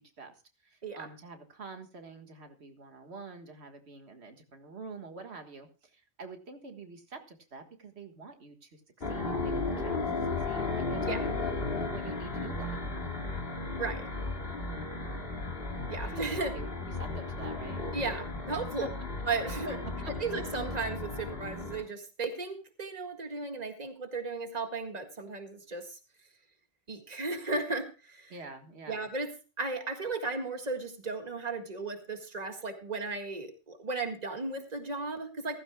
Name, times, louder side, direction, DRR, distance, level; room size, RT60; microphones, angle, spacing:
voice 1, 0.2-8.8 9.1-11.6 11.9-12.8 16.0-17.9 18.8-18.9 19.7-20.2 28.3-29.1, right 3 dB, 90° right, 5 dB, 1.9 m, -47 dB
sound 1, 9.0-21.8, left 3 dB, 65° left, 2.2 m, -35 dB
voice 2, 15.9-16.5 17.9-18.9 19.3-19.8 20.2-26.0 26.9-28.3 28.9-29.3 29.6-35.6, right 3 dB, 40° right, 5 dB, 1.9 m, -35 dB
16.0 x 15.5 x 2.3 m, 0.31 s
omnidirectional pair, 1.1 m